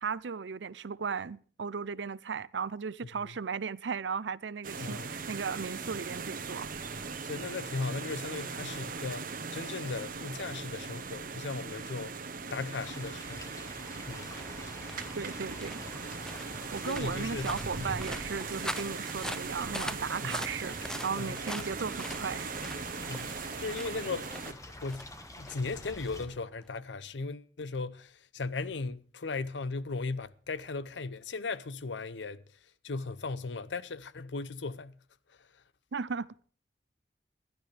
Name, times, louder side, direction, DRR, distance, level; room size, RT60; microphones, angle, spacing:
voice 1, 0.0-6.7 15.1-15.8 16.7-22.5 35.9-36.3, right 5 dB, 80° right, 0.6 m, -36 dB
sound 1, 4.6-24.5, right 4 dB, 50° right, 1.2 m, -39 dB
voice 2, 4.8-5.1 7.2-12.2 12.5-13.6 14.1-14.3 16.9-17.9 20.2-20.4 21.1-21.7 23.1-25.1 25.4-32.4 32.8-35.0 35.4-35.5, left 3 dB, 80° left, 0.7 m, -37 dB
sound 2, 12.8-26.3, left 2 dB, 20° left, 1.5 m, -49 dB
sound 3, 13.5-26.8, left 1 dB, 5° left, 0.5 m, -44 dB
20.5 x 12.0 x 3.4 m
head